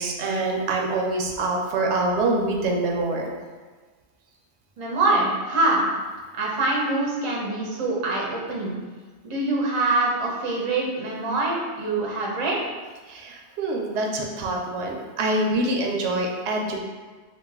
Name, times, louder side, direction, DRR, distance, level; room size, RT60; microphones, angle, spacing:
voice 1, 0.0-3.3 13.1-16.8, right 2 dB, 80° right, 0 dB, 0.9 m, -25 dB
voice 2, 4.8-5.9 6.3-8.8 9.2-12.6, right 2 dB, 40° right, -3 dB, 0.5 m, -24 dB
3.0 x 2.4 x 3.4 m, 1.4 s
omnidirectional pair, 1.1 m